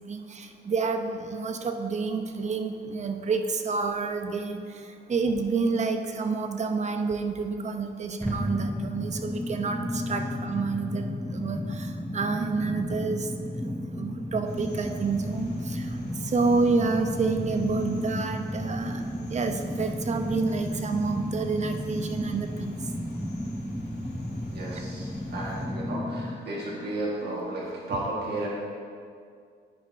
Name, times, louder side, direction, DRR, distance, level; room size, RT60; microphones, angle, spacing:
voice 1, 0.1-4.6 5.1-13.3 13.6-19.0 19.3-22.8 24.7-24.8, right 4 dB, 35° right, 6 dB, 0.7 m, -29 dB
sound 1, 8.2-26.4, left 1 dB, ahead, 0.3 m, -33 dB
sound 2, 14.4-25.7, left 2 dB, 55° left, 1.8 m, -48 dB
voice 2, 24.4-28.5, right 1 dB, 55° right, -5 dB, 1.6 m, -33 dB
11.0 x 5.3 x 2.7 m, 2.2 s
cardioid pair, 90°, 20 cm